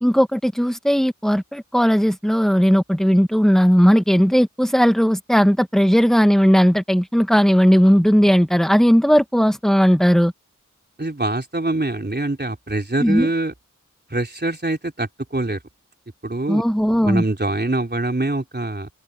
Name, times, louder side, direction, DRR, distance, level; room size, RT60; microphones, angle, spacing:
voice 1, 0.0-10.3 13.0-13.3 16.5-17.2, equal, ahead, 1.2 m, -16 dB
voice 2, 11.0-13.5 14.1-15.6 16.2-16.6 17.0-18.9, right 2 dB, 35° right, 4.0 m, -24 dB
open air
wide cardioid pair, 45°, 31 cm